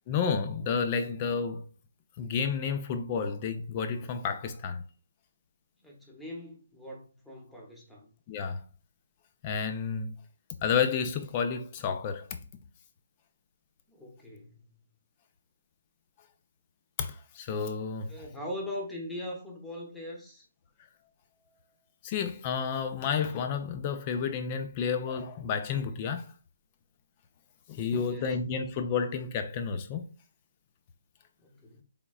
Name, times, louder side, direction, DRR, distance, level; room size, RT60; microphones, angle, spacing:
voice 1, 0.1-1.6 2.2-4.8 8.3-8.6 9.4-10.2 10.6-12.2 17.0-18.1 22.0-26.3 27.7-30.0, left 6 dB, 30° left, 0.5 m, -31 dB
voice 2, 5.8-8.1 13.9-14.7 18.1-20.4 27.9-28.4 31.4-31.8, left 1 dB, ahead, 0.8 m, -41 dB
3.8 x 3.5 x 2.3 m
hypercardioid pair, 155°, 0 cm